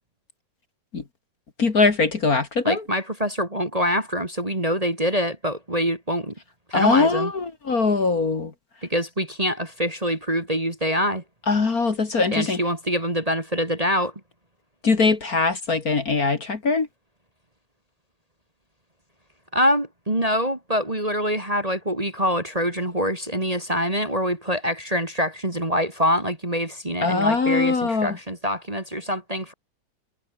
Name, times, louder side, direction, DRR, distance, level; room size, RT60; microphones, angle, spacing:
voice 1, 1.6-2.8 6.7-8.5 11.5-12.6 14.8-16.9 27.0-28.2, left 4 dB, 45° left, 2.5 m, -21 dB
voice 2, 2.6-6.3 6.7-7.3 8.8-11.2 12.3-14.1 19.5-29.5, equal, 15° right, 2.3 m, -25 dB
omnidirectional pair, 2.4 m